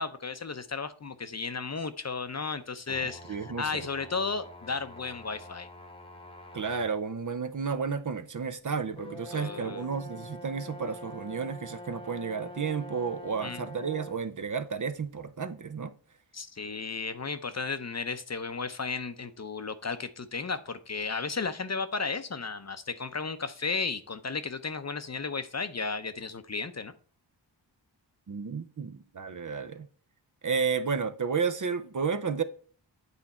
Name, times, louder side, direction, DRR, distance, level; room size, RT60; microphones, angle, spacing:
voice 1, 0.0-5.7 9.3-9.9 13.4-13.6 16.3-26.9, left 4 dB, 35° left, 0.7 m, -34 dB
sound 1, 2.9-7.0 7.6-7.7 9.0-14.2, left 1 dB, 10° left, 1.1 m, -46 dB
voice 2, 3.3-3.8 6.5-15.9 28.3-29.9 30.4-32.4, right 5 dB, 40° right, 0.7 m, -32 dB
8.3 x 4.3 x 4.2 m
cardioid pair, 50°, 45 cm